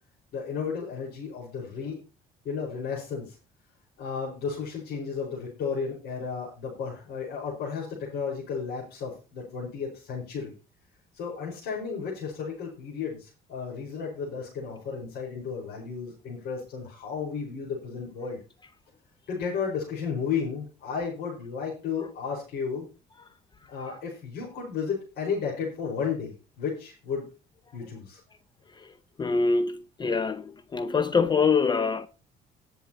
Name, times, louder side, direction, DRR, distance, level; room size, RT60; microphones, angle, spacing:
voice 1, 0.3-2.0 2.4-3.4 4.0-10.5 11.1-18.4 19.3-22.9 23.7-27.3 27.7-28.2, left 6 dB, 80° left, 5.0 m, -33 dB
voice 2, 29.2-32.1, left 4 dB, 25° left, 0.6 m, -25 dB
20.5 x 7.0 x 2.9 m
cardioid pair, 110°, 17 cm